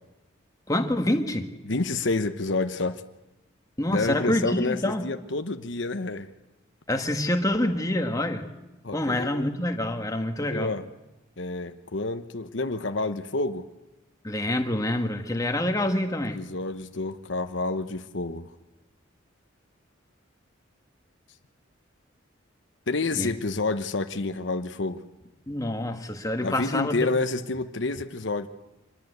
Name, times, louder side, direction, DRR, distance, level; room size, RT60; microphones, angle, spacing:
voice 1, 0.7-1.5 3.8-5.1 6.9-8.5 8.9-10.7 14.2-16.4 23.1-23.3 25.5-27.1, left 1 dB, 15° left, 5 dB, 1.8 m, -26 dB
voice 2, 1.7-3.0 3.9-6.3 8.8-9.5 10.4-10.8 11.4-13.6 16.3-18.5 22.9-25.0 26.4-28.5, left 3 dB, 65° left, 8 dB, 1.0 m, -29 dB
26.0 x 21.5 x 8.1 m, 1.0 s
head